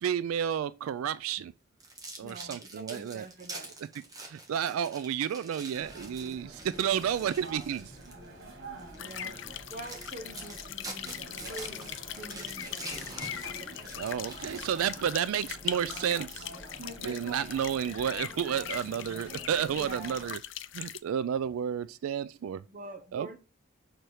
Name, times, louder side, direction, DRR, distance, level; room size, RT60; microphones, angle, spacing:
voice 1, 0.0-1.5 2.2-3.3 4.2-7.9 13.9-16.5 17.0-20.4 20.7-22.6 23.1-23.4, right 8 dB, 90° right, 0.3 m, -31 dB
sound 1, 1.8-8.3 8.8-9.0 9.5-9.6 9.9-15.4, right 2 dB, 15° right, 1.4 m, -45 dB
voice 2, 2.2-3.8 9.0-9.4 9.7-13.1 19.7-20.2 22.7-23.4, right 1 dB, 40° right, 0.9 m, -45 dB
sound 2, 5.7-20.3, right 1 dB, 70° right, 3.0 m, -46 dB
sound 3, 9.0-21.0, left 11 dB, 65° left, 0.5 m, -41 dB
6.6 x 4.5 x 4.8 m
head